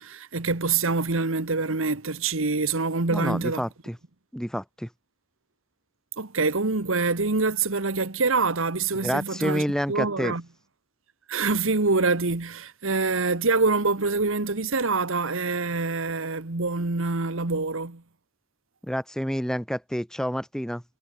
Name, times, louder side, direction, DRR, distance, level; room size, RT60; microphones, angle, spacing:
voice 1, 0.0-3.6 6.2-10.4 11.3-18.0, right 3 dB, 65° right, 1.4 m, -25 dB
voice 2, 3.1-4.0 4.3-4.9 9.0-10.3 18.8-20.8, equal, 5° left, 2.7 m, -28 dB
head